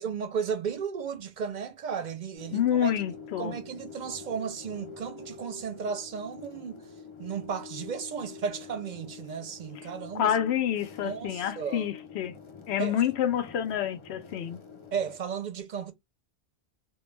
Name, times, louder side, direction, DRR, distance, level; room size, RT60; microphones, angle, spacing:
voice 1, 0.0-3.0 3.4-6.8 7.2-10.4 11.0-11.9 12.8-13.0 14.9-15.9, right 6 dB, 55° right, 0.6 m, -34 dB
sound 1, 2.3-15.2, left 5 dB, 40° left, 0.4 m, -46 dB
voice 2, 2.5-3.5 10.1-12.3 12.7-14.6, left 10 dB, 85° left, 0.8 m, -28 dB
2.3 x 2.2 x 3.1 m
omnidirectional pair, 1.1 m